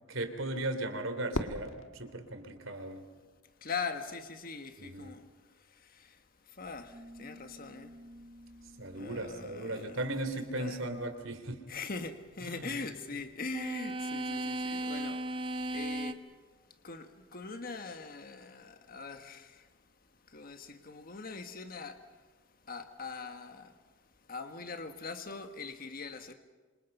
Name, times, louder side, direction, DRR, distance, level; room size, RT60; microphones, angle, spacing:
voice 1, 0.1-3.0 4.8-5.1 8.8-11.6 12.4-12.6, right 1 dB, 75° right, 3.4 m, -37 dB
Fireworks, 1.3-3.5, left 2 dB, 75° left, 1.7 m, -40 dB
voice 2, 3.6-8.0 8.9-10.1 10.6-10.8 11.7-16.3 16.8-19.7 20.3-22.3 22.6-23.8 24.3-26.3, left 4 dB, 45° left, 1.5 m, -42 dB
sound 1, 6.9-10.4 13.5-16.1, right 1 dB, 25° right, 1.2 m, -39 dB
27.5 x 27.0 x 5.5 m
head